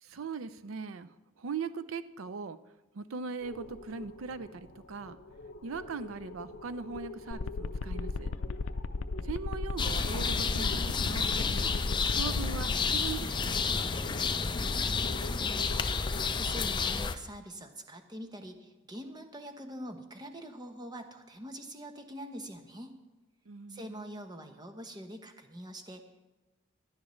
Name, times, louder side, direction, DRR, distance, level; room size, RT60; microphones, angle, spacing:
voice 1, 0.0-1.1 1.4-2.6 2.9-5.2 5.6-8.3 9.2-11.7 12.1-14.5 23.5-24.1, right 5 dB, 90° right, 13 dB, 0.5 m, -40 dB
sound 1, 3.4-17.1, left 2 dB, 60° left, 0.9 m, -47 dB
sound 2, 7.3-12.7, left 3 dB, 75° left, 0.5 m, -34 dB
sound 3, 9.8-17.2, left 5 dB, 25° left, 0.5 m, -30 dB
voice 2, 15.3-23.0 23.7-26.3, equal, 20° right, 6 dB, 0.9 m, -44 dB
17.0 x 11.0 x 3.2 m, 1.1 s
head